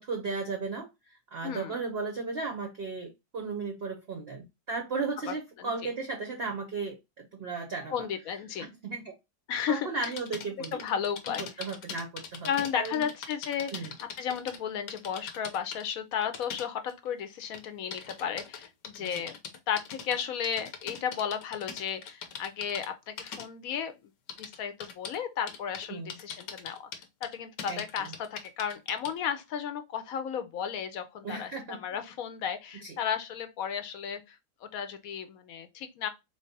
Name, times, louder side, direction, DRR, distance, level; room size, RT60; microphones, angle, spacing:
voice 1, 0.0-8.1 8.6-9.2 9.7-10.8 11.4-13.1 13.7-13.9 19.0-19.2 25.9-26.2 27.7-28.1 31.2-31.8 32.8-32.9, right 4 dB, 50° right, 0.7 m, -35 dB
voice 2, 1.4-1.8 5.3-5.7 7.9-8.7 9.5-10.1 10.7-11.4 12.5-13.9 14.2-19.4 19.7-23.9 24.4-26.9 27.2-36.1, left 8 dB, 65° left, 1.0 m, -34 dB
sound 1, 10.0-14.6 14.9-15.8 16.2-17.1 17.5-22.9 23.2-23.5 24.3-25.2 25.5-25.8 26.1-29.2, left 7 dB, 90° left, 1.4 m, -41 dB
3.9 x 3.2 x 2.7 m
omnidirectional pair, 1.8 m